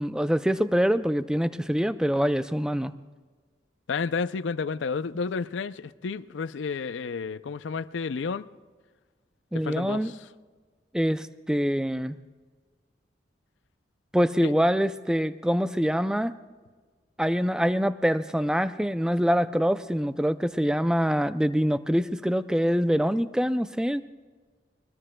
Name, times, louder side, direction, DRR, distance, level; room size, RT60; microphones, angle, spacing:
voice 1, 0.0-2.9 9.5-10.1 10.9-12.2 14.1-16.4 17.2-24.0, equal, 5° right, 0.3 m, -25 dB
voice 2, 3.9-8.5 9.5-10.2 14.4-14.5, left 5 dB, 90° left, 0.4 m, -31 dB
22.5 x 21.0 x 2.2 m
head